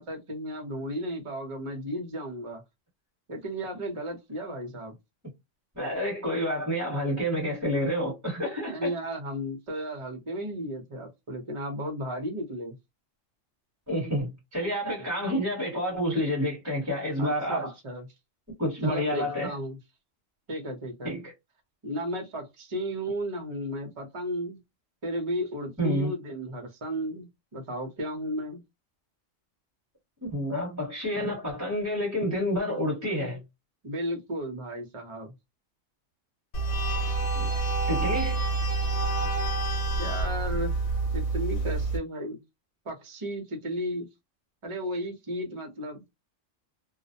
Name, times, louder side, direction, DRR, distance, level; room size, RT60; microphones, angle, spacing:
voice 1, 0.0-2.6 3.3-4.9 8.7-12.7 15.0-15.1 17.2-18.1 18.8-19.8 20.5-21.2 21.8-24.6 25.0-28.6 33.8-35.3 40.0-40.7 41.1-42.4 42.8-44.1 44.6-46.0, equal, 30° right, 0.6 m, -34 dB
voice 2, 5.7-8.9 13.9-17.7 18.6-19.5 21.0-21.3 25.8-26.1 30.2-33.4 37.3-37.5 37.9-38.4 39.2-39.3, equal, 15° right, 1.1 m, -29 dB
sound 1, 36.5-42.0, right 3 dB, 70° left, 1.1 m, -27 dB
2.4 x 2.0 x 2.6 m
omnidirectional pair, 1.3 m